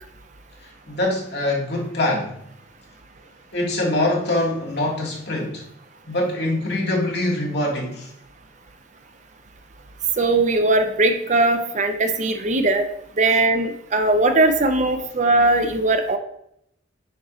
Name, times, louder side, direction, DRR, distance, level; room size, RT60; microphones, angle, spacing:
voice 1, 0.9-2.4 3.5-5.6 6.1-8.1, left 1 dB, 55° left, -2 dB, 1.8 m, -24 dB
voice 2, 10.2-12.9 13.2-16.2, right 2 dB, 40° right, 7 dB, 0.5 m, -19 dB
8.7 x 5.1 x 3.0 m, 0.74 s
head